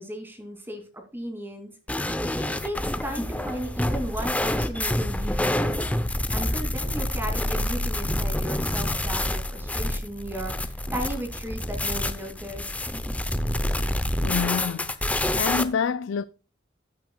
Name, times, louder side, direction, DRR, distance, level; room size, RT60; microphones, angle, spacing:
voice 1, 0.0-1.7 2.4-5.9 6.3-12.8, equal, 10° right, 2.8 m, -35 dB
sound 1, 1.9-15.6, left 1 dB, 5° left, 0.7 m, -27 dB
voice 2, 14.2-16.3, left 6 dB, 80° left, 0.4 m, -28 dB
15.5 x 9.3 x 2.3 m
head